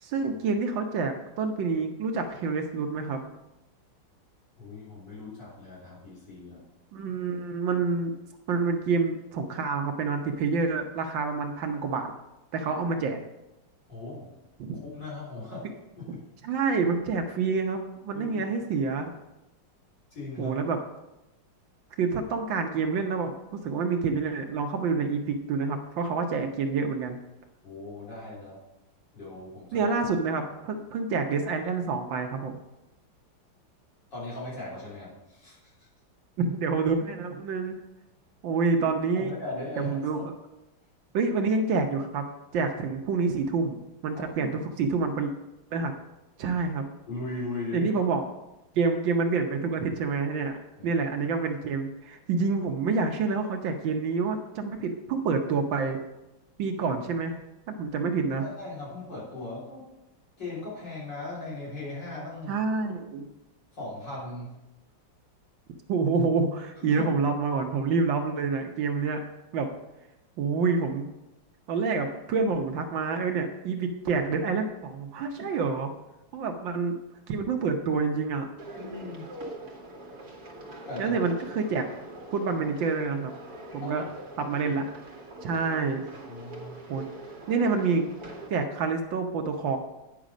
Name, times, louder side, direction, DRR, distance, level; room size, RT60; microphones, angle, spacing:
voice 1, 0.0-3.2 6.9-8.1 8.5-12.1 12.5-13.2 14.6-14.8 16.4-19.1 20.4-20.8 22.0-27.2 29.7-32.6 36.4-37.7 38.4-39.3 39.8-40.2 41.1-42.3 42.5-45.3 45.7-45.9 46.4-46.9 47.7-48.2 48.8-50.6 50.8-56.0 56.6-57.4 57.7-58.4 62.5-63.3 65.9-69.2 69.5-69.7 70.4-71.1 71.7-75.9 76.3-77.0 77.3-78.5 81.0-81.8 82.3-83.3 83.7-84.0 84.4-84.8 85.4-86.0 86.9-87.1 87.5-88.1 88.5-89.8, right 4 dB, 70° right, 5 dB, 1.5 m, -27 dB
voice 2, 4.6-6.6 13.9-14.3 14.9-16.2 18.1-18.5 20.1-20.6 27.6-28.6 29.1-30.0 34.1-35.7 39.1-40.2 44.4-44.6 47.1-47.9 50.8-50.9 58.4-59.9 60.4-62.6 63.8-64.6 66.8-67.1 78.8-79.3 80.9-81.2 83.8-84.1 86.3-86.8, left 2 dB, 55° left, -7 dB, 4.3 m, -38 dB
sound 1, 78.6-88.5, right 1 dB, 50° right, 1.9 m, -43 dB
9.7 x 6.2 x 5.0 m, 0.94 s
omnidirectional pair, 2.3 m